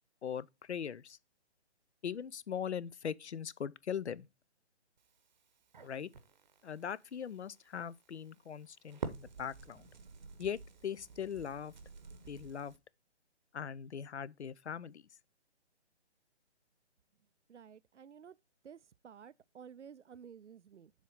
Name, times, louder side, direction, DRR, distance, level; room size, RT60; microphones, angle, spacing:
voice 1, 0.2-1.2 2.0-4.3 5.8-6.1 6.6-9.9 10.4-11.7 12.3-12.7 13.5-15.0, left 8 dB, 70° left, 0.5 m, -40 dB
Crackle, 5.0-12.8, right 5 dB, 40° right, 0.8 m, -50 dB
voice 2, 17.5-18.4 18.6-20.9, right 7 dB, 80° right, 0.5 m, -53 dB
7.3 x 3.6 x 5.6 m
figure-of-eight pair, 140°, 35 cm